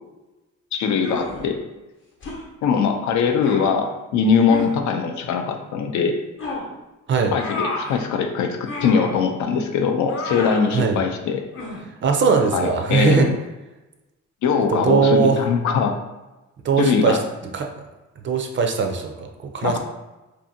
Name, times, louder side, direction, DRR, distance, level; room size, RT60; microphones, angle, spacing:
voice 1, 0.7-1.6 2.6-6.2 7.3-11.4 12.5-13.3 14.4-16.0 16.8-17.2 19.6-19.8, left 6 dB, 70° left, 5 dB, 0.4 m, -21 dB
sound 1, 1.0-1.5 2.2-2.4 3.4-3.7 4.5-4.8 6.4-6.7 7.4-8.0 8.7-9.2 10.1-10.7 11.5-11.8, left 3 dB, 40° left, 0.8 m, -30 dB
voice 2, 12.0-13.3 14.7-15.4 16.6-17.2 17.5-17.7 18.2-19.8, right 5 dB, 40° right, 4 dB, 0.4 m, -20 dB
2.6 x 2.5 x 2.6 m, 1.1 s
cardioid pair, 90°, 30 cm